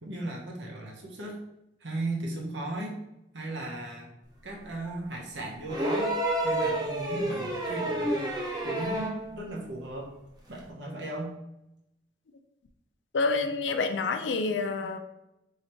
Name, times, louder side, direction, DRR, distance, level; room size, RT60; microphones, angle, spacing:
voice 1, 0.0-1.4 1.8-3.0 3.3-4.1 4.4-6.1 6.4-8.2 8.6-10.1 10.5-11.3, right 1 dB, 80° right, 0 dB, 0.9 m, -36 dB
sound 1, 5.7-9.2 10.6-10.7, right 1 dB, 20° right, 0.6 m, -29 dB
voice 2, 13.1-15.0, left 3 dB, 90° left, 8 dB, 0.4 m, -28 dB
3.2 x 2.8 x 4.3 m, 0.87 s
head